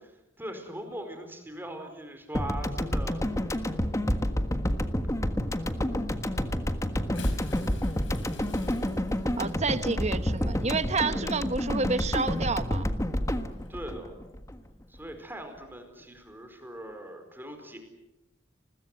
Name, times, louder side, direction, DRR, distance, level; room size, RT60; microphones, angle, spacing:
voice 1, 0.4-3.2 11.0-11.3 13.7-14.1 14.9-17.8, right 1 dB, 10° right, 6 dB, 4.7 m, -40 dB
sound 1, 2.4-14.8, equal, 15° left, 1.5 m, -29 dB
Bathtub (filling or washing) / Splash splatter, 6.9-12.6 13.5-13.7 15.1-15.2, left 2 dB, 70° left, 5.1 m, -49 dB
voice 2, 9.4-12.9, right 3 dB, 35° right, 11 dB, 1.2 m, -29 dB
29.5 x 21.5 x 7.9 m, 0.95 s
head